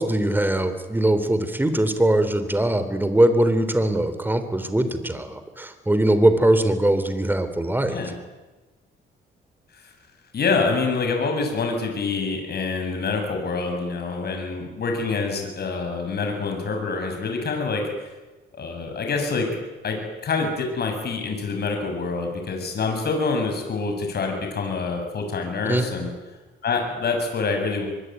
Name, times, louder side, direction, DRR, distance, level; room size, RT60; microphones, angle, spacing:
voice 1, 0.0-8.0 25.7-25.8, right 1 dB, 10° right, 10 dB, 3.6 m, -21 dB
voice 2, 10.3-17.9 18.5-19.5 19.8-26.1 26.6-27.8, left 4 dB, 55° left, 3 dB, 7.3 m, -26 dB
23.5 x 21.5 x 9.4 m, 1.2 s
cardioid pair, 90°, 20 cm